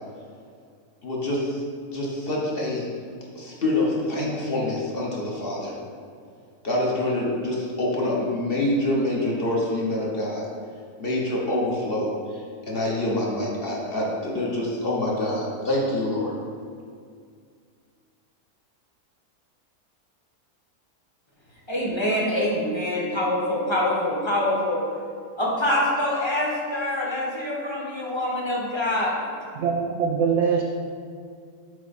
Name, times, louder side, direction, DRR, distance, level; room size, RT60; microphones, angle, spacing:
voice 1, 1.0-1.6 1.9-2.9 3.3-5.7 6.6-10.4 11.0-12.1 12.7-16.3, left 1 dB, 40° left, -4 dB, 1.2 m, -26 dB
voice 2, 21.7-24.8 25.4-29.1, left 1 dB, 20° left, -4 dB, 1.1 m, -25 dB
voice 3, 29.6-30.6, right 6 dB, 70° right, 2 dB, 0.6 m, -23 dB
7.7 x 4.3 x 4.2 m, 2.2 s
omnidirectional pair, 1.6 m